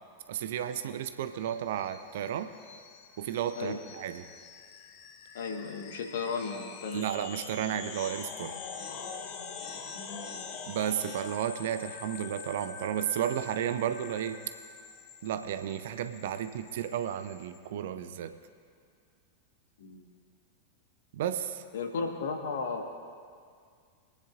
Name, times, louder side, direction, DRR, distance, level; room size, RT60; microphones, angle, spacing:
voice 1, 0.3-2.5 3.2-4.3 6.9-8.6 10.7-14.4 15.2-18.3 21.1-21.6, right 10 dB, 55° right, 10 dB, 0.6 m, -33 dB
sound 1, 1.4-17.6, left 6 dB, 45° left, 1.1 m, -45 dB
voice 2, 5.3-7.1 7.6-7.8 9.9-10.6 19.8-20.1 21.7-22.9, left 4 dB, 60° left, 3 dB, 1.5 m, -35 dB
26.5 x 9.6 x 2.6 m, 2.2 s
figure-of-eight pair, 90°, 0 cm